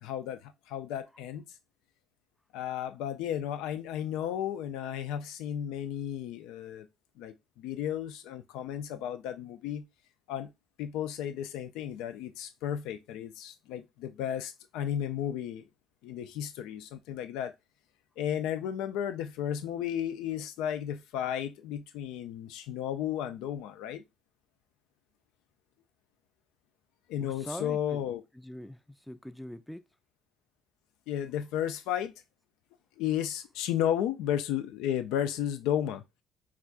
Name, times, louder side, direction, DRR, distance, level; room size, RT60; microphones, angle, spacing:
voice 1, 0.0-1.4 2.5-6.9 7.2-9.8 10.3-10.5 10.8-15.7 16.0-17.5 18.2-24.0 27.1-28.2 31.1-32.1 33.0-36.0, left 10 dB, 75° left, 0.3 m, -33 dB
voice 2, 27.2-28.1 28.3-29.8, equal, 5° left, 0.4 m, -43 dB
4.2 x 2.4 x 2.3 m
hypercardioid pair, 55°, 0 cm